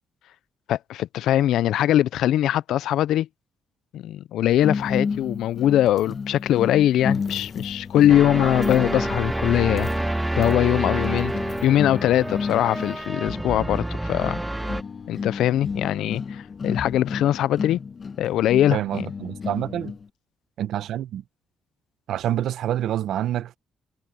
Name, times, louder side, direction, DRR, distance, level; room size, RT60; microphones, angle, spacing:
voice 1, 0.7-3.3 3.9-9.9 10.4-11.3 11.6-14.4 15.1-17.8 18.2-18.8, left 12 dB, 80° left, 0.4 m, -21 dB
sound 1, 4.6-20.1, left 5 dB, 40° left, 1.3 m, -32 dB
sound 2, 8.1-14.8, right 1 dB, 10° right, 1.4 m, -28 dB
voice 2, 18.7-19.9 20.6-21.2 22.1-23.6, right 11 dB, 75° right, 0.9 m, -27 dB
cardioid pair, 90°, 0 cm